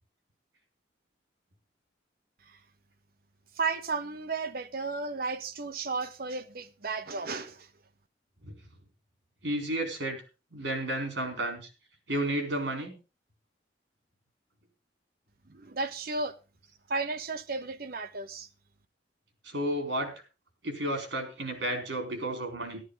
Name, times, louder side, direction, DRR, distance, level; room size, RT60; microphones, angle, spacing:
voice 1, 3.6-7.7 15.5-16.4 16.9-18.5, right 3 dB, 55° right, 1.0 m, -33 dB
voice 2, 9.4-10.2 10.5-11.7 12.1-12.9 19.4-20.1 20.6-22.8, right 1 dB, 80° right, 4.2 m, -32 dB
12.5 x 12.0 x 4.0 m
head